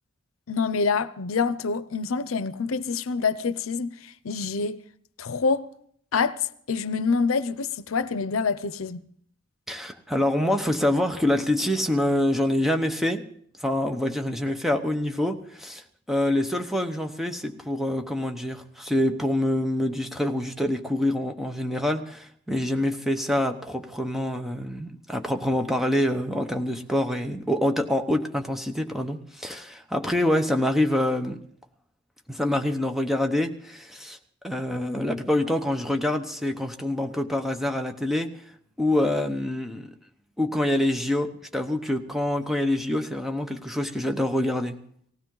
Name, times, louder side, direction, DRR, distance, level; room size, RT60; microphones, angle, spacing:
voice 1, 0.5-4.8 5.2-5.7 6.1-9.0, left 5 dB, 90° left, 0.6 m, -26 dB
voice 2, 9.7-13.2 13.6-31.4 32.3-34.2 34.4-38.3 38.8-39.9 40.4-44.8, left 1 dB, ahead, 1.0 m, -26 dB
18.5 x 16.0 x 3.9 m
head